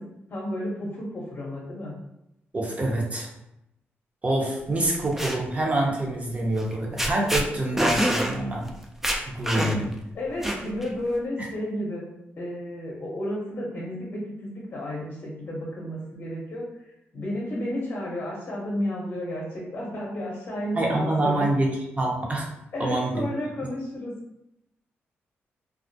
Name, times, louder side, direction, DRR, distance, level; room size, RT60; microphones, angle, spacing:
voice 1, 0.3-2.0 10.1-12.1 12.4-16.9 17.1-21.5 22.7-24.1, left 1 dB, 45° left, -4 dB, 0.7 m, -32 dB
voice 2, 2.5-3.3 4.2-8.7 9.3-9.9 11.4-11.5 20.7-22.5 22.8-23.3, right 1 dB, 30° right, -1 dB, 0.7 m, -26 dB
sound 1, 4.8-5.4 6.6-6.7 7.0-7.4 7.8-8.3 8.7-8.8 9.0-9.9 10.4-10.9, equal, 5° right, 0.3 m, -25 dB
2.3 x 2.0 x 2.6 m, 0.85 s
cardioid pair, 80°, 5 cm